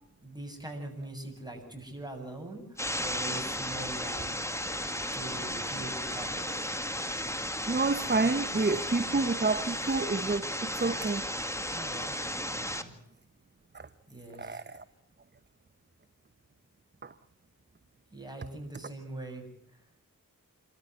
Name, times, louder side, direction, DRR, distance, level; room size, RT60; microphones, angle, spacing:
voice 1, 0.2-4.5 5.1-6.7 11.7-12.2 12.5-13.0 14.1-14.6 18.1-19.4, right 1 dB, 10° right, 8.0 m, -42 dB
sound 1, 2.8-12.8, equal, 10° left, 2.1 m, -34 dB
voice 2, 7.7-11.3 13.7-13.9 14.4-14.8 17.0-17.1, right 3 dB, 30° right, 0.9 m, -29 dB
27.5 x 14.0 x 9.4 m
cardioid pair, 45°, 34 cm